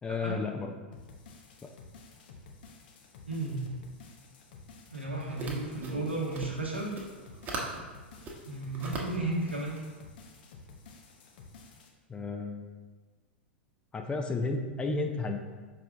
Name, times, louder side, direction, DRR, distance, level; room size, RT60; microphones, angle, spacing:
voice 1, 0.0-0.7 12.1-12.8 13.9-15.4, left 3 dB, 15° left, 4 dB, 0.5 m, -32 dB
sound 1, 0.9-11.9, left 4 dB, 55° left, 0.8 m, -52 dB
voice 2, 3.3-3.7 4.9-6.9 8.5-9.8, right 2 dB, 85° right, -3 dB, 1.3 m, -33 dB
sound 2, 5.3-7.8 8.1-9.8, right 3 dB, 30° right, 1.1 m, -40 dB
5.8 x 4.9 x 3.4 m, 1.3 s
figure-of-eight pair, 90°, 6 cm